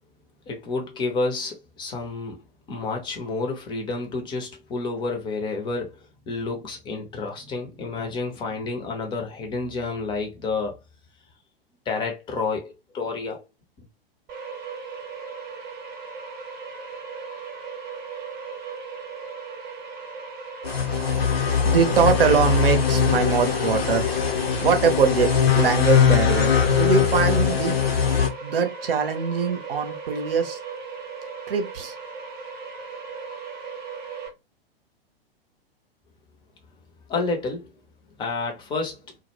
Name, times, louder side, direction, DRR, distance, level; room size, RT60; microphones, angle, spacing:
voice 1, 0.5-2.4 2.7-6.0 6.3-10.8 11.9-13.4 37.1-37.7 38.2-39.1, left 3 dB, 15° left, 0.6 m, -29 dB
sound 1, 14.3-34.3, right 5 dB, 30° right, 0.9 m, -37 dB
sound 2, 20.6-28.3, left 7 dB, 75° left, 0.7 m, -21 dB
voice 2, 21.6-24.1 24.6-27.8 28.4-30.6 31.5-31.9, right 6 dB, 65° right, 0.7 m, -22 dB
2.1 x 2.0 x 3.0 m
figure-of-eight pair, 105°, 30 cm